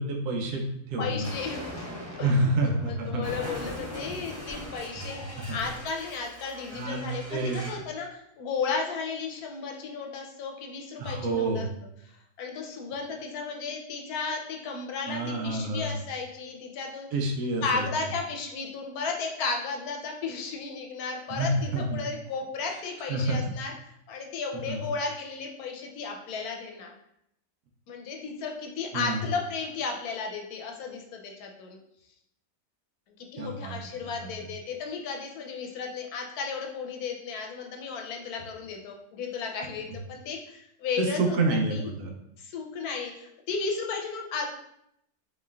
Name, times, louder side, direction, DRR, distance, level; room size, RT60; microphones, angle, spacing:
voice 1, 0.0-1.3 2.2-3.2 5.0-5.6 6.7-7.7 11.0-11.7 15.1-15.9 17.1-18.1 21.3-22.0 23.1-23.4 24.5-24.8 28.9-29.2 33.4-33.7 34.0-34.3 41.0-42.1, right 2 dB, 85° right, 1 dB, 1.1 m, -28 dB
voice 2, 1.0-1.9 2.2-2.4 2.6-11.7 12.1-17.1 17.6-23.7 24.1-26.9 27.9-31.8 33.2-41.9 42.4-44.5, left 5 dB, 80° left, 1 dB, 1.1 m, -34 dB
Explosion, 1.2-7.9, equal, 10° left, 1.1 m, -41 dB
4.2 x 3.1 x 2.3 m, 0.76 s
omnidirectional pair, 1.6 m